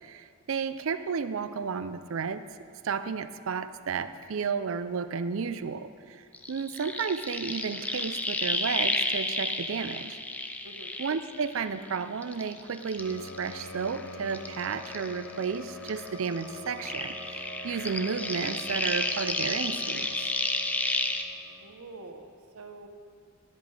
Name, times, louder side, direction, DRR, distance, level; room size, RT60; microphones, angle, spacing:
voice 1, 0.0-2.4 2.8-10.2 11.0-20.1, right 6 dB, 65° right, 12 dB, 0.4 m, -32 dB
sound 1, 6.3-11.9 12.2-15.6 15.8-21.2, left 2 dB, 5° left, 0.4 m, -32 dB
voice 2, 10.6-10.9 21.6-22.9, right 3 dB, 85° right, 4 dB, 1.0 m, -46 dB
sound 2, 13.0-21.9, left 1 dB, 80° left, 0.9 m, -44 dB
9.7 x 8.4 x 4.9 m, 2.1 s
head